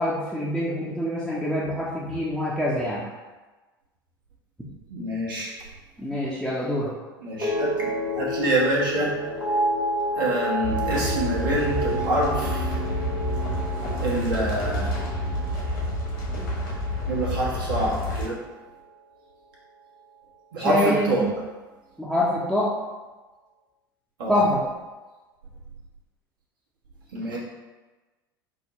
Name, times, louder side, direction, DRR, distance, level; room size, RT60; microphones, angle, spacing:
voice 1, 0.0-3.0 6.0-6.9 20.6-21.3 22.0-22.7 24.3-24.6, left 1 dB, ahead, -9 dB, 0.6 m, -25 dB
voice 2, 4.9-5.5 7.2-9.1 10.1-12.7 14.0-14.9 17.1-18.4 20.5-21.2 24.2-24.3 27.1-27.4, right 1 dB, 65° right, -5 dB, 1.1 m, -26 dB
sound 1, 7.4-17.8 18.1-18.6, equal, 85° left, 0.8 m, -30 dB
sound 2, 10.6-18.2, equal, 65° left, 1.2 m, -29 dB
5.3 x 2.2 x 2.9 m, 1.2 s
figure-of-eight pair, 75°, 12 cm